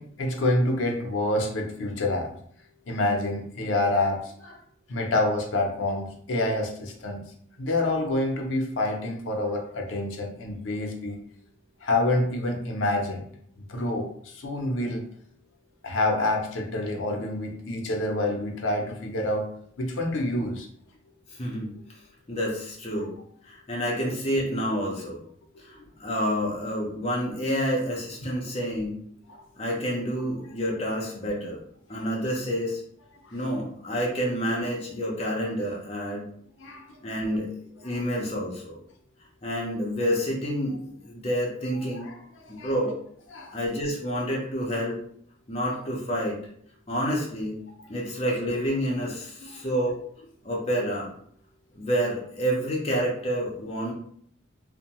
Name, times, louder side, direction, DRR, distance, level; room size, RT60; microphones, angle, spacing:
voice 1, 0.0-2.3 2.9-4.6 4.9-7.3 7.6-11.2 11.8-13.2 13.6-15.0 15.8-19.5 19.8-20.7 22.9-23.1 29.3-29.4 33.2-33.4 36.6-37.0 41.7-42.1 42.5-42.7 43.3-43.6 45.7-45.8 49.4-49.6, left 1 dB, 80° left, 2 dB, 0.6 m, -27 dB
voice 2, 21.3-21.7 22.3-23.1 23.4-25.2 25.6-29.0 29.6-31.6 31.9-32.8 33.3-36.3 37.0-37.5 37.8-38.8 39.4-42.1 42.5-42.9 43.5-45.0 45.5-46.4 46.9-47.6 47.9-50.0 50.4-51.1 51.7-53.9, equal, 30° left, -3 dB, 0.7 m, -28 dB
2.6 x 2.1 x 2.9 m, 0.62 s
head